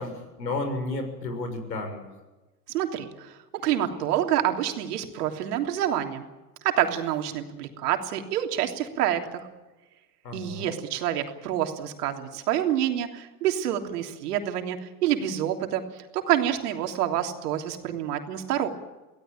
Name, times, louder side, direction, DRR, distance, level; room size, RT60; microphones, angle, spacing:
voice 1, 0.0-2.1 10.2-10.7, left 2 dB, 85° left, 7 dB, 6.7 m, -32 dB
voice 2, 2.7-6.2 6.6-9.5 10.3-18.7, right 11 dB, 65° right, 4 dB, 3.3 m, -27 dB
24.5 x 17.0 x 8.9 m, 1.1 s
hypercardioid pair, 105°, 49 cm